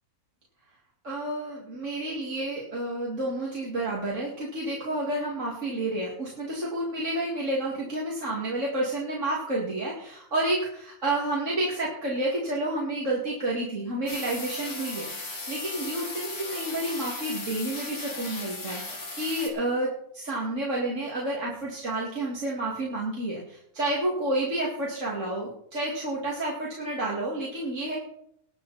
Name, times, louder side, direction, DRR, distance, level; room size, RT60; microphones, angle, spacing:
voice 1, 1.0-28.0, right 1 dB, 55° right, -4 dB, 2.8 m, -30 dB
sound 1, 14.1-19.5, left 3 dB, 90° left, 3.3 m, -37 dB
20.5 x 7.9 x 4.2 m, 0.70 s
omnidirectional pair, 1.5 m